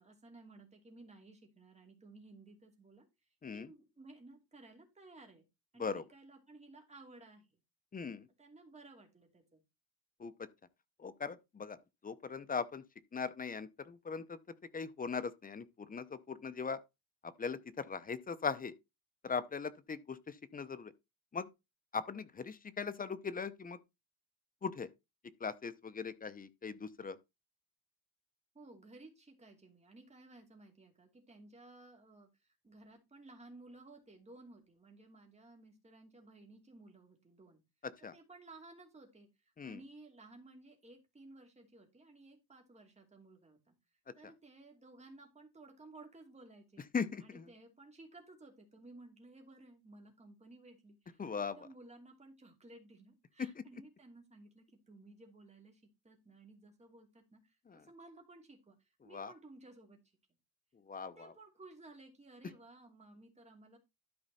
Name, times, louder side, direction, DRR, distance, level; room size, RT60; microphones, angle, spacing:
voice 1, 0.0-3.1 3.5-5.5 5.7-7.5 8.4-9.6 28.5-37.6 38.1-39.3 39.6-43.7 44.1-46.8 47.2-60.0 61.0-63.8, right 2 dB, 20° right, 2.8 m, -57 dB
voice 2, 7.9-8.3 10.2-10.5 11.0-11.8 12.0-12.8 13.1-14.4 14.7-16.8 17.2-18.7 19.2-20.9 21.3-21.5 21.9-23.8 24.6-24.9 25.4-27.2 37.8-38.1 39.6-39.8 46.9-47.5 51.2-51.7 53.4-53.6 57.7-57.8 59.0-59.3 60.9-61.3, left 5 dB, 25° left, 0.7 m, -40 dB
12.5 x 5.0 x 4.2 m
cardioid pair, 145°, 36 cm